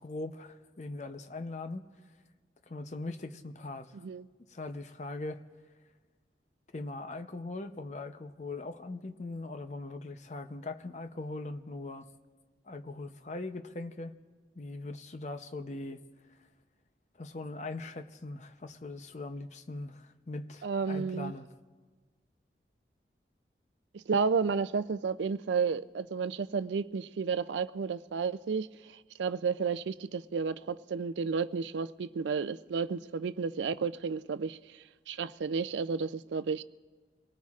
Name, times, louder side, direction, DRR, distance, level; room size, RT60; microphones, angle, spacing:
voice 1, 0.0-1.9 2.7-4.0 4.5-5.4 6.7-12.1 12.7-14.1 14.6-16.0 17.2-21.5, left 2 dB, 40° left, 0.6 m, -40 dB
voice 2, 20.6-21.3 23.9-28.7 29.2-34.6 35.1-36.6, right 5 dB, 85° right, 0.4 m, -32 dB
27.0 x 19.0 x 2.4 m
head